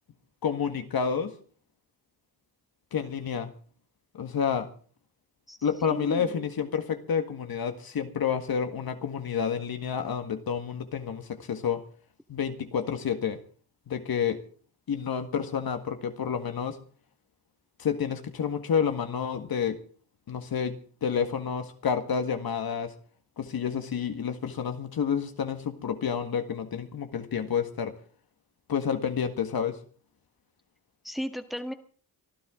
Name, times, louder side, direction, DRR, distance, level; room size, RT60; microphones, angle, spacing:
voice 1, 0.4-1.3 2.9-3.5 4.1-4.7 5.6-11.8 12.3-13.4 13.9-14.4 14.9-16.8 17.8-19.8 20.3-22.9 23.4-28.0 28.7-29.8, left 7 dB, 70° left, 1.7 m, -29 dB
voice 2, 5.5-6.5 31.0-31.7, equal, ahead, 1.6 m, -36 dB
24.5 x 13.0 x 3.8 m
cardioid pair, 90°, 38 cm